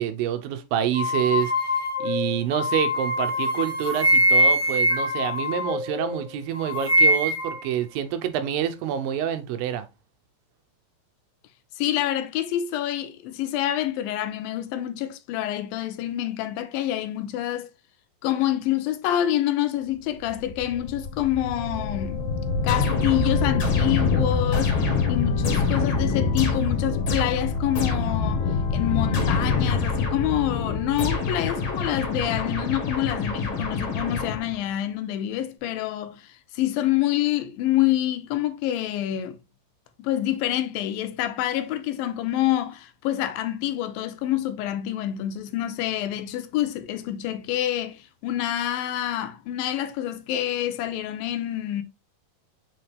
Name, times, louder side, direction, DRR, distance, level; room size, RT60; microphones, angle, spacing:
voice 1, 0.0-1.5 2.0-9.9, right 10 dB, 80° right, 2.6 m, -27 dB
sound 1, 0.9-6.2 6.5-7.6, equal, 15° left, 1.7 m, -23 dB
voice 2, 11.8-17.7 18.2-22.3 22.6-24.8 25.1-28.5 28.7-39.4 40.0-51.8, left 12 dB, 90° left, 2.4 m, -27 dB
sound 2, 20.3-32.3, left 4 dB, 70° left, 2.4 m, -26 dB
sound 3, 22.7-28.3 29.1-30.4 31.0-34.7, left 3 dB, 50° left, 2.3 m, -29 dB
7.8 x 3.9 x 3.3 m
omnidirectional pair, 4.1 m